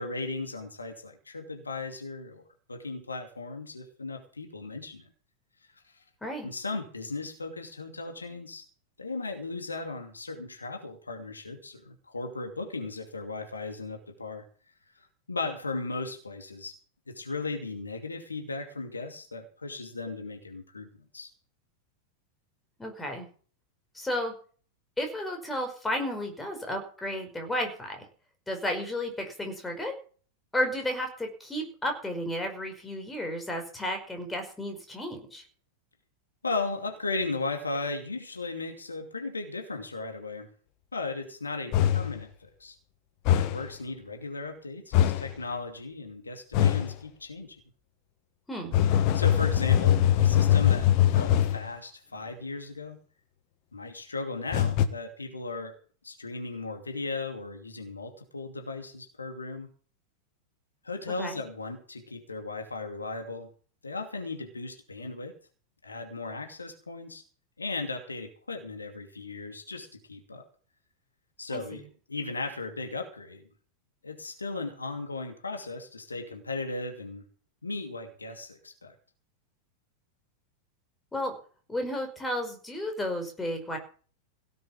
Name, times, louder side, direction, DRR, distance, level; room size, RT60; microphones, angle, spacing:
voice 1, 0.0-2.4 2.7-5.1 6.4-8.6 9.0-14.4 15.0-16.8 17.1-21.3 36.4-40.5 40.9-42.8 43.3-47.6 49.1-53.0 53.7-55.7 56.0-59.7 60.8-63.5 63.8-65.3 65.8-67.2 67.6-70.4 71.4-73.4 74.0-77.2 77.6-78.9, left 3 dB, 80° left, 5 dB, 2.6 m, -36 dB
voice 2, 22.8-23.3 23.9-24.3 25.0-28.0 28.5-29.9 30.5-35.4 48.5-48.8 61.2-61.4 71.5-71.8 81.1-81.4 81.7-83.8, left 1 dB, 10° left, 3 dB, 5.3 m, -33 dB
sound 1, 41.7-42.2 43.3-43.7 44.9-45.3 46.5-46.9 48.7-51.7 54.5-54.9, left 10 dB, 45° left, 1.4 m, -22 dB
17.0 x 7.6 x 7.3 m, 0.41 s
figure-of-eight pair, 90°, 0 cm